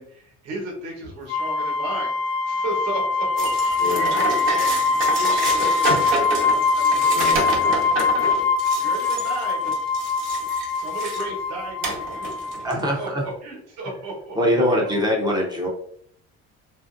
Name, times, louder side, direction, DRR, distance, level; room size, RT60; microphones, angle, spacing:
voice 1, 0.0-2.2 2.4-8.5 8.8-9.7 10.8-12.4 12.9-15.0, right 2 dB, 65° right, 0 dB, 0.9 m, -35 dB
sound 1, 1.3-12.7, left 4 dB, 50° left, 0.5 m, -23 dB
sound 2, 3.3-7.8, right 11 dB, 85° right, 0.5 m, -41 dB
sound 3, 3.4-11.3 11.8-12.8, right 2 dB, 45° right, 0.9 m, -29 dB
voice 2, 3.8-4.1 7.0-7.4 12.6-13.2 14.4-15.7, left 1 dB, 15° right, -1 dB, 0.4 m, -23 dB
2.9 x 2.5 x 2.4 m, 0.63 s
cardioid pair, 150°, 29 cm